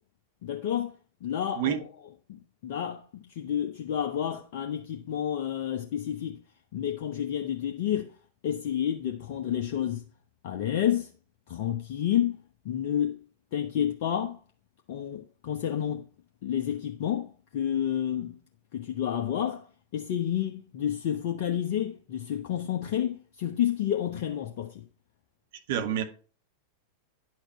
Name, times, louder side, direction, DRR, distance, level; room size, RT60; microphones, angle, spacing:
voice 1, 0.4-0.9 1.2-1.8 2.3-3.0 3.3-6.4 6.7-8.1 8.4-10.0 10.4-11.1 11.5-12.4 12.6-13.2 13.5-14.4 14.9-16.0 16.4-18.4 18.7-19.7 19.9-24.8, left 10 dB, 50° left, 1.0 m, -30 dB
voice 2, 25.7-26.0, right 10 dB, 55° right, 1.5 m, -27 dB
10.5 x 6.4 x 4.4 m
figure-of-eight pair, 90°, 0 cm